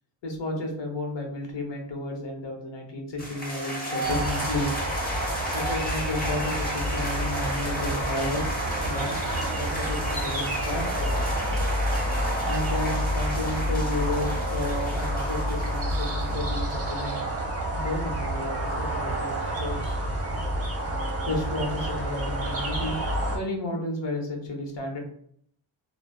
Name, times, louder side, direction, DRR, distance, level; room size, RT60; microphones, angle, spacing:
voice 1, 0.2-4.7 5.5-9.2 9.6-11.3 12.4-17.3 17.7-20.0 21.2-23.0 23.3-25.0, left 2 dB, 60° left, 1 dB, 1.0 m, -32 dB
sound 1, 3.2-16.4, equal, 20° left, 0.9 m, -34 dB
sound 2, 4.0-23.4, right 1 dB, 30° right, 0.8 m, -29 dB
3.3 x 2.1 x 2.3 m, 0.64 s
cardioid pair, 75°, 50 cm